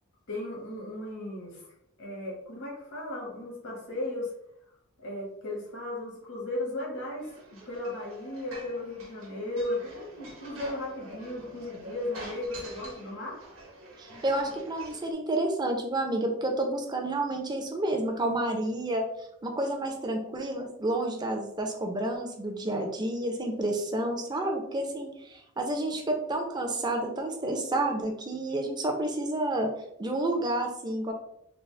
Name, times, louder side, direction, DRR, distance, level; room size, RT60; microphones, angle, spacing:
voice 1, 0.3-1.7 2.0-4.3 5.0-13.4, left 1 dB, 80° left, -3 dB, 1.3 m, -36 dB
sound 1, 7.2-15.1, right 1 dB, 80° right, 1.1 m, -46 dB
voice 2, 14.0-19.1 19.4-29.7 30.0-31.1, right 1 dB, 20° right, 2 dB, 0.5 m, -30 dB
3.9 x 2.0 x 3.1 m, 0.79 s
head